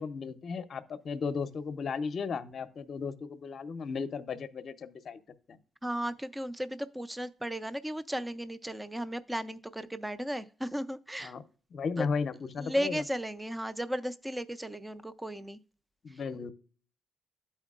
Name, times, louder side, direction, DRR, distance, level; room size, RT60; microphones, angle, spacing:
voice 1, 0.0-5.2 5.5-5.6 11.2-11.4 11.7-13.0 16.0-16.5, left 5 dB, 55° left, 0.6 m, -35 dB
voice 2, 5.8-11.3 12.0-12.1 12.6-15.6, equal, 10° right, 0.4 m, -35 dB
12.0 x 4.4 x 2.4 m
cardioid pair, 90°, 0 cm